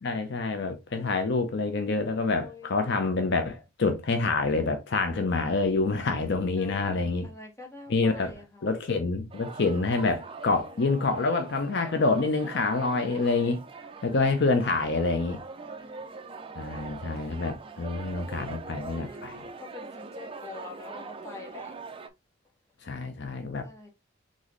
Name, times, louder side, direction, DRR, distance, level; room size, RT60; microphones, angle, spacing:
voice 1, 0.0-7.3 7.9-8.3 8.6-13.6 14.0-15.4 16.6-19.4 22.8-23.7, left 3 dB, 55° left, 0.6 m, -27 dB
voice 2, 2.3-2.8 6.6-8.7 10.4-10.9 15.6-16.6 19.0-21.7 23.6-23.9, left 3 dB, 15° left, 1.3 m, -46 dB
sound 1, 9.3-22.1, right 4 dB, 25° right, 0.4 m, -43 dB
4.1 x 3.6 x 3.1 m
head